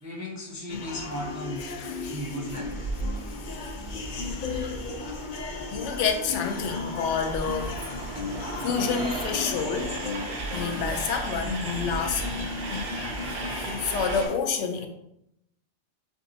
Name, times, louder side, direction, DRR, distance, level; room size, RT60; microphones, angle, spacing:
voice 1, 0.0-1.7 2.1-2.9, equal, 25° right, 0.4 m, -37 dB
sound 1, 0.7-14.3, left 4 dB, 55° left, 0.6 m, -36 dB
Train, 0.8-14.3, right 2 dB, 60° right, 1.0 m, -36 dB
voice 2, 1.8-2.2 3.3-3.7 4.1-4.8 5.7-7.8 8.6-10.0 10.5-12.5 13.5-14.9, left 6 dB, 75° left, 0.9 m, -29 dB
7.1 x 2.7 x 2.6 m
omnidirectional pair, 1.3 m